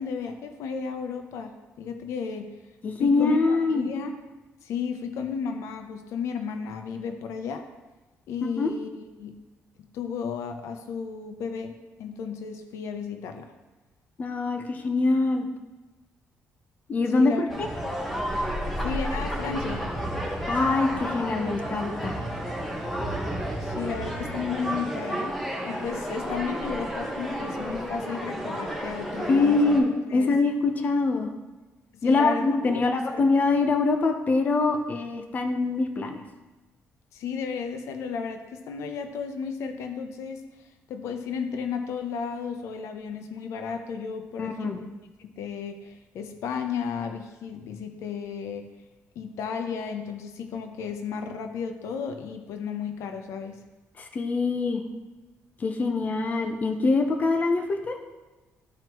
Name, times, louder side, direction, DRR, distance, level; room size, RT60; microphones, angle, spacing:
voice 1, 0.0-2.5 3.0-4.2 4.6-7.7 8.3-9.4 9.8-13.5 17.1-17.5 18.8-19.9 23.6-29.8 30.1-30.3 31.9-33.2 37.1-44.8 45.2-48.7 49.2-53.6, left 6 dB, 85° left, 6 dB, 0.7 m, -34 dB
voice 2, 2.8-3.9 8.6-8.7 14.2-15.5 16.9-17.7 20.5-22.2 29.3-31.3 32.0-36.2 44.4-44.8 54.0-54.8 55.6-58.0, left 3 dB, 35° left, 4 dB, 0.8 m, -24 dB
sound 1, 17.5-29.8, equal, 5° left, 1.5 m, -31 dB
13.5 x 4.5 x 3.0 m, 1.2 s
cardioid pair, 140°, 5 cm